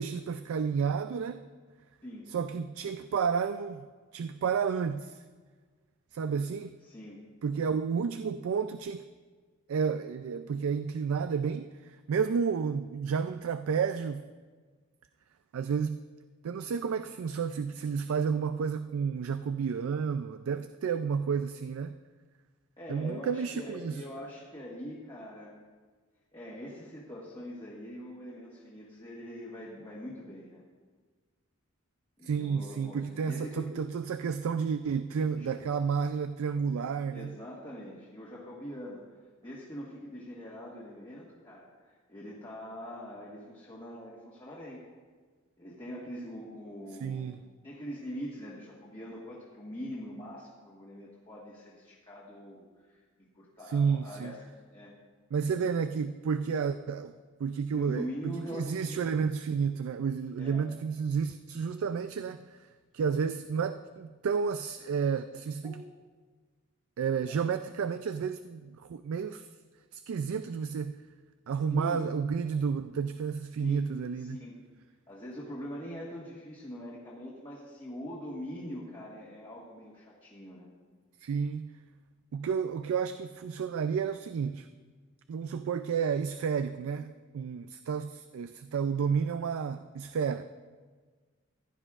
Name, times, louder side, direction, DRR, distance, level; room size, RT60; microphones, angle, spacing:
voice 1, 0.0-1.5 2.3-3.9 4.1-5.2 6.1-6.7 7.4-9.1 9.7-14.3 15.5-16.0 16.4-22.0 22.9-24.0 32.2-37.3 47.0-47.4 53.7-54.4 55.3-57.1 57.4-62.7 62.9-65.7 67.0-69.5 69.9-70.9 71.5-74.4 81.2-81.7 82.3-84.7 85.3-90.4, right 6 dB, 80° right, 10 dB, 0.3 m, -31 dB
voice 2, 6.9-7.2 22.8-25.5 26.3-30.6 32.2-33.7 35.3-35.7 36.6-39.0 39.4-44.8 45.6-47.3 47.6-53.0 53.3-54.4 54.7-54.9 55.5-55.7 57.7-59.0 60.4-60.6 65.6-65.8 67.3-67.4 71.7-72.0 73.6-73.9 74.1-74.6 75.1-80.7, equal, 25° left, -6 dB, 1.5 m, -43 dB
15.5 x 11.0 x 2.4 m, 1.5 s
head